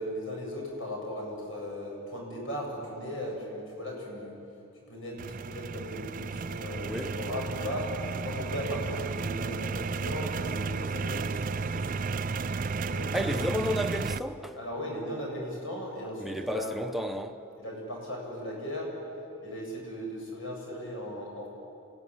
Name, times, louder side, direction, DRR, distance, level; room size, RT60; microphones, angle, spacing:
voice 1, 0.0-4.3 4.9-5.2 5.4-7.9 8.2-13.6 14.6-16.8 17.6-18.9 19.4-21.5, equal, 75° left, 7.6 m, -37 dB
sound 1, 5.2-14.2, right 4 dB, 40° right, 0.5 m, -33 dB
voice 2, 13.1-14.6 16.2-17.4, equal, ahead, 1.0 m, -32 dB
28.0 x 16.5 x 9.9 m
head